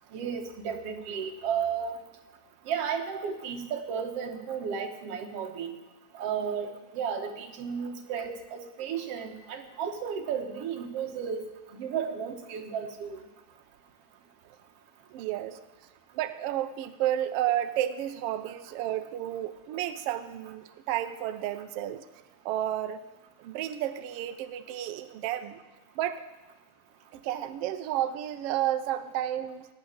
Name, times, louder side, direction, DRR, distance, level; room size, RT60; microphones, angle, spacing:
voice 1, 0.1-2.0 2.7-5.8 6.1-11.4 11.7-13.3, right 7 dB, 60° right, 4 dB, 2.2 m, -33 dB
voice 2, 15.1-15.6 16.1-22.0 22.4-23.0 23.4-25.6 26.0-26.2 27.1-29.7, right 12 dB, 85° right, 10 dB, 1.3 m, -31 dB
18.0 x 6.7 x 8.8 m, 1.1 s
omnidirectional pair, 3.4 m